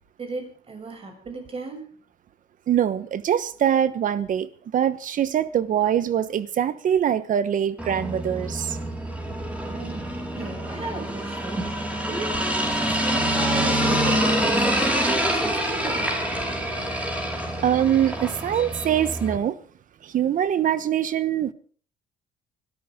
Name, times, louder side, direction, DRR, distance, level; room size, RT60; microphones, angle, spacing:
voice 1, 0.2-2.0 9.6-16.1, right 3 dB, 35° right, 7.1 m, -35 dB
voice 2, 2.7-8.8 12.9-13.0 17.6-19.6 20.0-21.5, right 10 dB, 50° right, 1.2 m, -23 dB
sound 1, 7.8-19.4, right 1 dB, 10° right, 4.8 m, -26 dB
25.0 x 13.0 x 3.7 m
cardioid pair, 110°, 17 cm